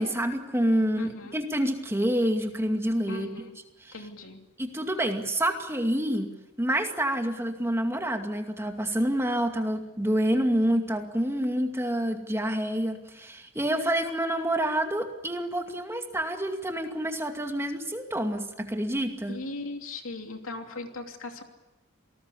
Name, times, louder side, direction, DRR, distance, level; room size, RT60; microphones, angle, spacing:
voice 1, 0.0-3.3 3.8-3.9 4.6-6.3 6.6-19.4, right 1 dB, 10° right, 4 dB, 2.3 m, -28 dB
voice 2, 1.0-1.4 3.1-3.6 3.9-4.4 19.3-21.4, left 2 dB, 70° left, 4 dB, 3.0 m, -38 dB
27.5 x 19.5 x 8.5 m, 0.97 s
head